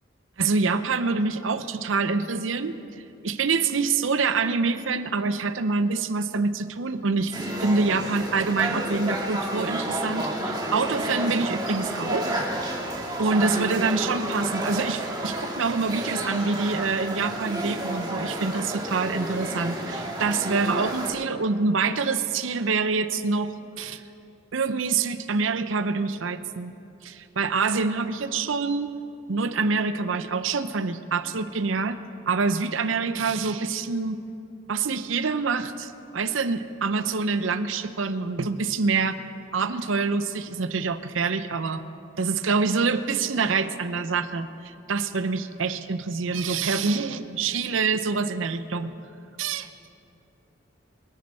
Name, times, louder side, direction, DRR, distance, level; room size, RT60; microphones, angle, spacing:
voice 1, 0.4-2.7 3.2-7.3 7.6-12.3 13.2-24.0 24.5-26.7 27.0-28.9 29.3-32.0 32.3-34.2 34.7-39.2 39.5-41.8 42.2-48.9 49.4-49.7, right 4 dB, 90° right, 12 dB, 0.7 m, -26 dB
sound 1, 7.3-21.1, right 1 dB, 20° right, 1.8 m, -31 dB
24.5 x 9.6 x 4.4 m, 2.7 s
head